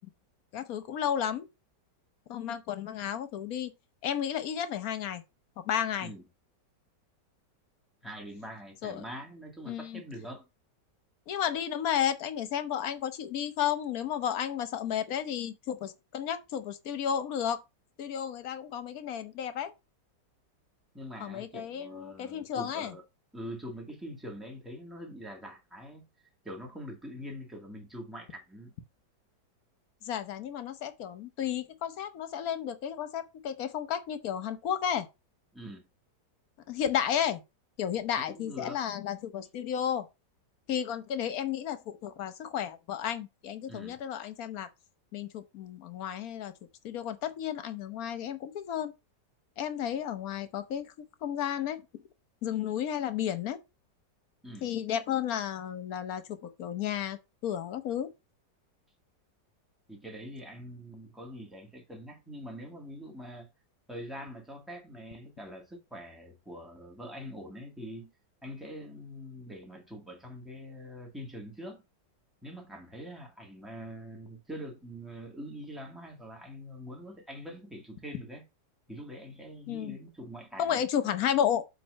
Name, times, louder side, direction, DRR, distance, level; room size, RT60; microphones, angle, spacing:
voice 1, 0.5-1.5 2.3-3.7 4.0-5.2 5.6-6.1 8.8-9.0 9.7-10.0 11.3-17.6 18.0-19.7 21.2-22.9 30.0-35.1 36.7-37.4 37.8-40.1 40.7-44.7 45.1-46.5 46.8-48.9 49.6-52.0 52.4-53.6 54.6-58.1 79.7-80.0 80.6-81.6, left 9 dB, 60° left, 1.3 m, -32 dB
voice 2, 8.0-10.5 20.9-23.0 23.3-26.1 26.4-28.7 35.5-35.8 38.3-38.8 43.7-44.0 54.4-54.7 59.9-63.5 63.9-68.1 68.4-71.8 72.4-78.4 78.9-80.8, equal, ahead, 2.1 m, -44 dB
7.7 x 3.4 x 6.3 m
omnidirectional pair, 1.9 m